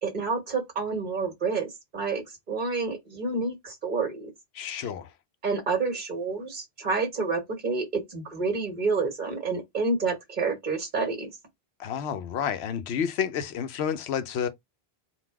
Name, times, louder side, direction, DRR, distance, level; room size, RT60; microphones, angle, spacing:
voice 1, 0.0-4.3 5.4-11.3, right 4 dB, 50° right, 1.4 m, -29 dB
voice 2, 4.6-5.1 11.8-14.5, left 8 dB, 85° left, 0.9 m, -30 dB
4.0 x 2.3 x 4.6 m
omnidirectional pair, 1.0 m